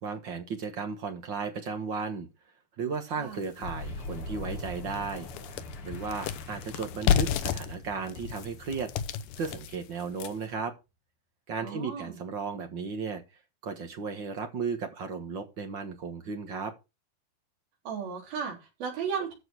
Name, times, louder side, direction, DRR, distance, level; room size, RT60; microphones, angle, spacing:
voice 1, 0.0-2.3 2.8-5.3 5.8-8.9 9.4-10.7 11.5-13.2 13.6-16.7, right 5 dB, 55° right, 1.3 m, -35 dB
sound 1, 3.4-3.5 4.0-4.1 4.5-10.5, left 9 dB, 75° left, 2.2 m, -31 dB
Boom, 3.6-10.2, left 2 dB, 45° left, 2.2 m, -42 dB
voice 2, 11.6-12.2 17.9-19.3, right 6 dB, 85° right, 5.2 m, -35 dB
13.5 x 4.8 x 6.2 m
omnidirectional pair, 4.1 m